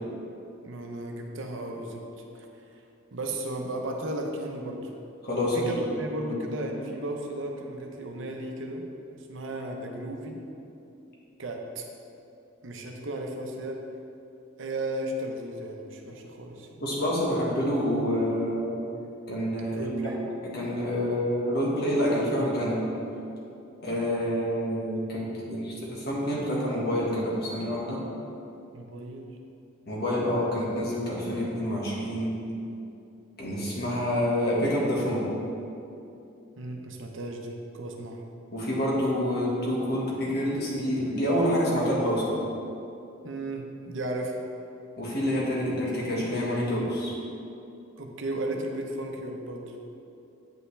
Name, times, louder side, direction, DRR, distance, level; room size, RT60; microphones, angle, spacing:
voice 1, 0.6-2.0 2.3-2.5 3.1-4.9 5.4-8.9 9.3-10.4 11.4-11.8 12.6-13.8 14.6-16.8 19.7-20.3 28.7-29.3 36.6-38.2 43.2-44.4 48.0-49.8, right 1 dB, 65° right, 2 dB, 0.8 m, -35 dB
voice 2, 5.2-5.6 6.2-6.4 16.8-18.8 19.3-19.9 20.5-22.9 23.8-28.0 29.9-32.4 33.4-35.3 38.5-42.2 45.0-47.1, equal, 50° left, -5 dB, 1.6 m, -27 dB
8.8 x 5.6 x 3.3 m, 2.7 s
head